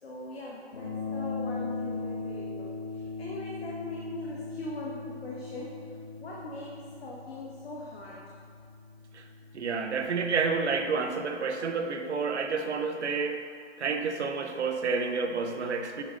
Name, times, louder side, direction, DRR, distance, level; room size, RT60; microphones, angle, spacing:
voice 1, 0.0-5.9 6.2-8.2, left 1 dB, 60° left, -4 dB, 1.1 m, -41 dB
sound 1, 0.7-10.8, left 3 dB, 40° left, 1.2 m, -39 dB
voice 2, 9.5-13.4 13.8-16.0, right 4 dB, 70° right, 6 dB, 0.8 m, -29 dB
7.0 x 5.2 x 3.7 m, 2.2 s
hypercardioid pair, 170°, 35 cm